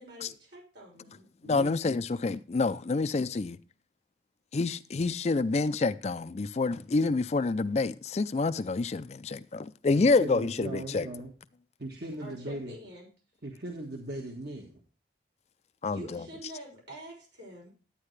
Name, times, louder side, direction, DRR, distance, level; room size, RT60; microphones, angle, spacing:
voice 1, 0.0-1.2 12.2-13.1 15.8-17.7, right 1 dB, 85° right, 6.4 m, -46 dB
voice 2, 1.4-3.6 4.5-11.1 15.8-16.2, left 3 dB, 35° left, 0.4 m, -28 dB
voice 3, 10.0-11.3 11.8-12.7 13.4-14.8, right 1 dB, 60° right, 1.4 m, -39 dB
11.5 x 9.1 x 3.2 m
head